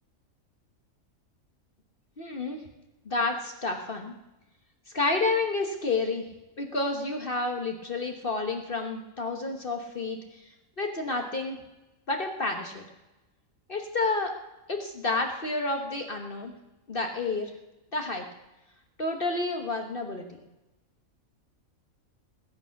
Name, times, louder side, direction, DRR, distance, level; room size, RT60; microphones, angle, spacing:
voice 1, 2.2-2.6 3.0-4.1 4.9-6.2 6.6-10.2 10.8-11.6 12.1-12.8 13.7-14.3 14.7-16.5 16.9-17.5 17.9-18.2 19.0-20.2, left 3 dB, 40° left, 3 dB, 1.4 m, -30 dB
20.0 x 9.0 x 5.8 m, 1.0 s
omnidirectional pair, 1.4 m